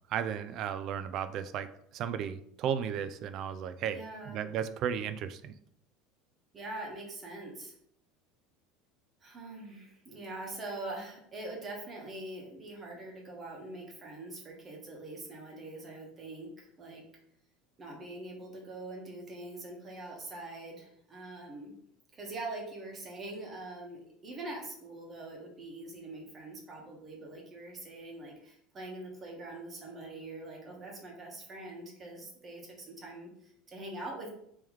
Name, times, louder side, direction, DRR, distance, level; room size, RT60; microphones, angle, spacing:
voice 1, 0.1-4.0 4.3-5.6, right 8 dB, 45° right, 12 dB, 0.3 m, -34 dB
voice 2, 3.9-4.4 6.5-7.7 9.2-17.0 17.8-21.7 22.1-34.3, right 2 dB, 20° right, 0 dB, 1.2 m, -43 dB
3.6 x 3.0 x 4.7 m, 0.71 s
cardioid pair, 155°, 0 cm